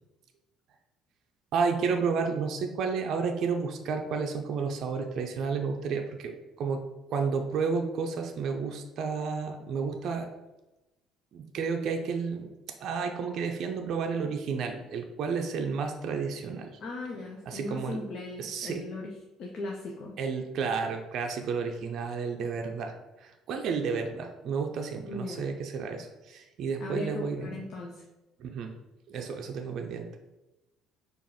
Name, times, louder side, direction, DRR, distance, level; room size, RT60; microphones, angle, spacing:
voice 1, 1.5-10.3 11.3-12.5 12.8-16.7 17.5-18.0 18.4-18.8 20.2-27.6 28.4-28.8 29.1-30.2, right 5 dB, 55° right, 4 dB, 0.4 m, -31 dB
voice 2, 16.8-19.1 19.4-20.1 25.0-25.5 26.8-28.0, left 2 dB, 55° left, 0 dB, 0.6 m, -38 dB
4.6 x 2.5 x 4.7 m, 1.0 s
hypercardioid pair, 55°, 0 cm